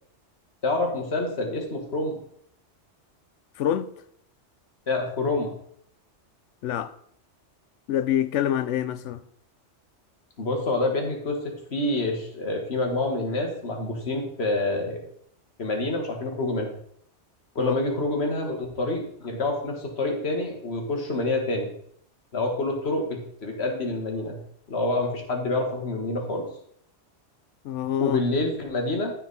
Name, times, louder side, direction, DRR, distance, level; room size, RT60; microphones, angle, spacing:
voice 1, 0.6-2.2 4.9-5.5 10.4-15.0 15.6-16.8 17.6-21.7 22.3-24.4 24.7-26.5 28.0-29.1, left 2 dB, 60° left, 1.9 m, -27 dB
voice 2, 3.6-3.9 6.6-6.9 7.9-9.2 17.6-17.7 27.6-28.2, left 10 dB, 80° left, 0.9 m, -26 dB
13.0 x 4.5 x 4.1 m
omnidirectional pair, 1.2 m